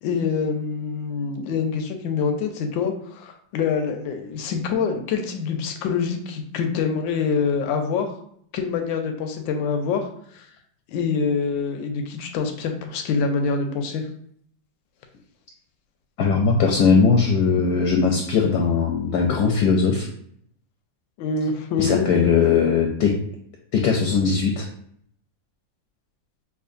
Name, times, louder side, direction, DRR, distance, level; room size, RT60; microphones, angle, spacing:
voice 1, 0.0-8.1 8.5-10.1 10.3-10.5 10.9-14.1 21.2-22.1, left 5 dB, 90° left, 4 dB, 1.3 m, -25 dB
voice 2, 16.2-20.1 21.8-23.1 23.7-24.6, left 5 dB, 70° left, 1 dB, 0.9 m, -19 dB
5.7 x 2.4 x 2.5 m, 0.65 s
omnidirectional pair, 2.0 m